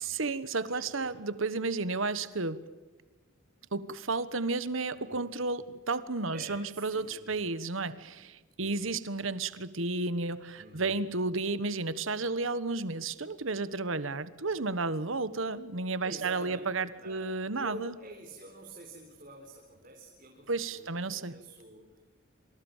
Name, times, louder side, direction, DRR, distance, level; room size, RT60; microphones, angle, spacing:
voice 1, 0.0-2.6 3.7-17.9 20.5-21.3, right 3 dB, 75° right, 15 dB, 1.4 m, -32 dB
voice 2, 0.7-1.2 4.9-5.3 6.3-7.5 8.6-8.9 10.6-11.0 16.0-16.7 17.0-22.0, right 1 dB, 40° right, 1 dB, 4.1 m, -48 dB
28.0 x 26.5 x 7.4 m, 1.2 s
head